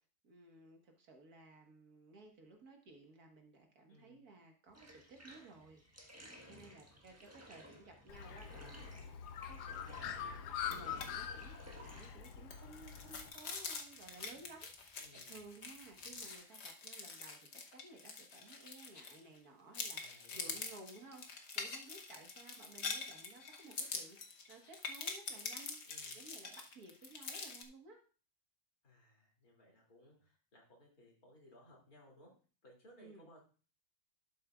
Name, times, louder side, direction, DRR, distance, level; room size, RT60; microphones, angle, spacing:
voice 1, 0.2-6.0 6.4-9.2 9.5-15.0 15.2-25.8 26.1-28.0 33.0-33.3, right 3 dB, 70° right, 3 dB, 1.9 m, -57 dB
voice 2, 3.9-4.2 6.6-7.2 15.0-15.4 20.0-20.6 25.8-26.2 28.8-32.3 32.6-33.4, left 1 dB, 65° left, -1 dB, 3.2 m, -63 dB
Bathtub (filling or washing), 4.7-16.4, equal, 10° right, 1.2 m, -58 dB
Bird, 8.1-13.3, left 8 dB, 90° left, 1.3 m, -44 dB
sound 1, 10.6-11.1 11.4-11.5 11.9-19.4 19.7-27.6, left 4 dB, 50° left, 1.1 m, -45 dB
12.0 x 7.7 x 2.4 m, 0.38 s
omnidirectional pair, 1.7 m